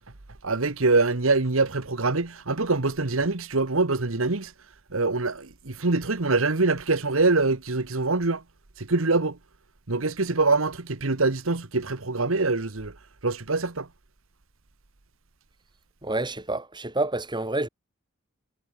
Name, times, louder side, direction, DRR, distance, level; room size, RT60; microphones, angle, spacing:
voice 1, 0.4-4.5 4.9-8.4 8.8-9.4 9.9-12.9 13.2-13.9, right 3 dB, 75° right, 1.5 m, -24 dB
voice 2, 16.0-17.7, right 2 dB, 20° right, 5.0 m, -28 dB
head